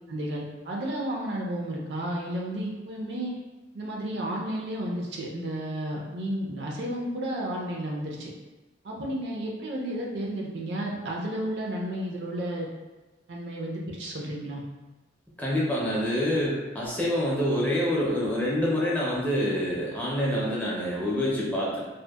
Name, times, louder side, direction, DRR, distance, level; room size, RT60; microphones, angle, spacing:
voice 1, 0.1-3.4 3.7-8.3 8.8-12.7 13.3-14.6, right 1 dB, 65° right, -2 dB, 0.4 m, -32 dB
voice 2, 15.4-21.8, equal, 10° left, -6 dB, 0.4 m, -26 dB
2.7 x 2.0 x 2.3 m, 1.1 s
head